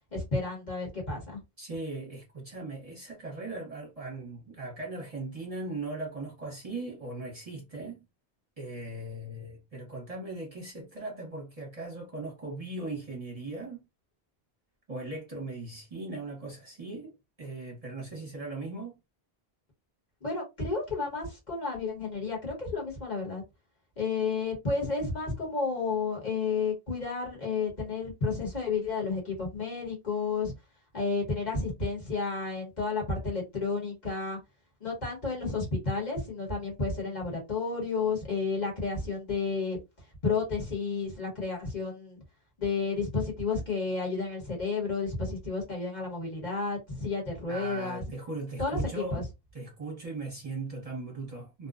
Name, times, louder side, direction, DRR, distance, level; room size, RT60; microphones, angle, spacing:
voice 1, 0.1-1.4 20.2-23.4 24.0-30.5 30.9-34.4 34.8-39.8 40.2-42.2 42.6-48.0 48.6-49.2, left 4 dB, 45° left, 1.2 m, -31 dB
voice 2, 1.6-8.0 8.6-13.8 14.9-19.0 47.5-49.2 49.5-51.7, right 2 dB, 40° right, 0.9 m, -39 dB
2.6 x 2.1 x 2.4 m
omnidirectional pair, 1.0 m